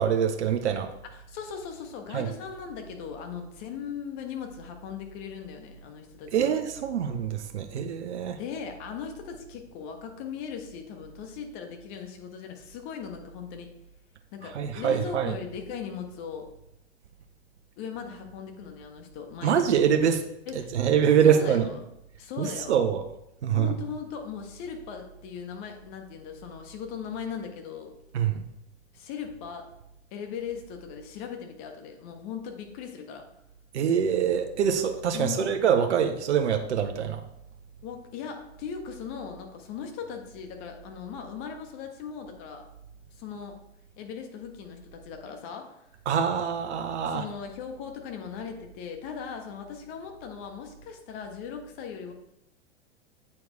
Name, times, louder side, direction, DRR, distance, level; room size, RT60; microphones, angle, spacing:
voice 1, 0.0-0.9 2.1-2.3 6.3-8.4 14.5-15.3 19.4-20.2 20.7-21.7 22.4-23.0 23.4-23.7 28.1-28.4 33.7-37.2 46.1-47.2, right 8 dB, 75° right, 6 dB, 0.8 m, -24 dB
voice 2, 1.0-6.5 8.4-13.7 14.3-16.5 17.8-19.8 20.4-20.7 21.2-21.8 22.2-22.8 23.5-27.9 28.9-29.7 30.1-33.3 35.1-35.5 37.8-42.7 43.1-43.6 44.0-45.8 47.0-52.1, left 7 dB, 45° left, 4 dB, 1.5 m, -39 dB
8.4 x 4.6 x 4.7 m, 0.84 s
hypercardioid pair, 105°, 35 cm